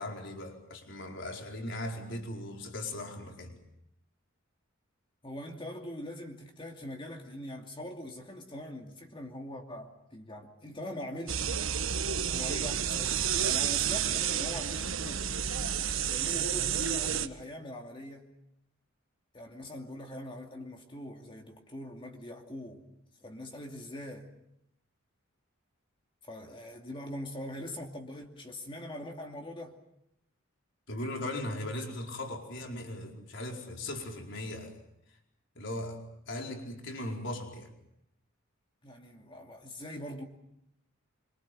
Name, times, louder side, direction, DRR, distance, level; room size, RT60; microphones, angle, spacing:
voice 1, 0.0-3.6 30.9-34.8 35.5-36.0 36.3-37.7, left 1 dB, 65° left, 4.7 m, -38 dB
voice 2, 5.2-11.5 12.3-15.3 16.0-18.3 19.3-22.8 23.2-24.3 26.3-29.8 38.8-40.2, left 1 dB, 25° left, 2.6 m, -42 dB
sound 1, 11.3-17.3, right 8 dB, 80° right, 1.3 m, -30 dB
26.5 x 25.0 x 7.6 m
head